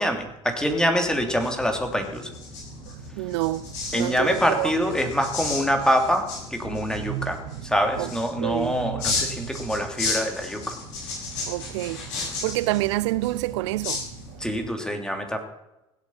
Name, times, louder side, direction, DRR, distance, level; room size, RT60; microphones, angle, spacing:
voice 1, 0.0-2.3 3.9-7.4 7.6-10.7 14.4-15.4, equal, 5° left, 3.1 m, -25 dB
sound 1, 1.0-14.6, left 4 dB, 70° left, 7.2 m, -34 dB
voice 2, 3.2-4.7 6.8-7.3 8.0-8.1 8.4-9.2 11.4-12.1 12.4-14.0, right 18 dB, 70° right, 0.4 m, -28 dB
17.0 x 8.2 x 7.3 m
hypercardioid pair, 65°, 15 cm